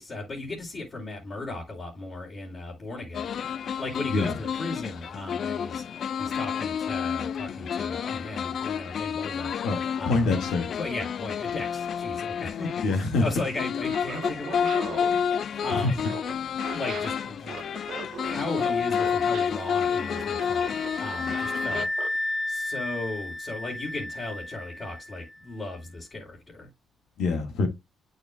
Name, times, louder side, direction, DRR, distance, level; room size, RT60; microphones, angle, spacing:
voice 1, 0.0-3.3 3.8-9.5 10.0-10.4 10.8-16.0 16.7-17.6 18.2-20.7 21.0-21.9 22.2-26.7, left 2 dB, 40° left, 3.0 m, -36 dB
sound 1, 3.1-21.9, left 7 dB, 60° left, 0.4 m, -30 dB
voice 2, 9.6-10.7 12.8-13.2 15.5-15.9 21.7-21.8 27.2-27.7, left 3 dB, 80° left, 1.7 m, -26 dB
Laughter, 13.8-22.2, right 8 dB, 70° right, 0.9 m, -40 dB
sound 2, 18.6-25.4, left 1 dB, ahead, 0.7 m, -34 dB
8.8 x 6.5 x 2.2 m
cardioid pair, 90°, 0 cm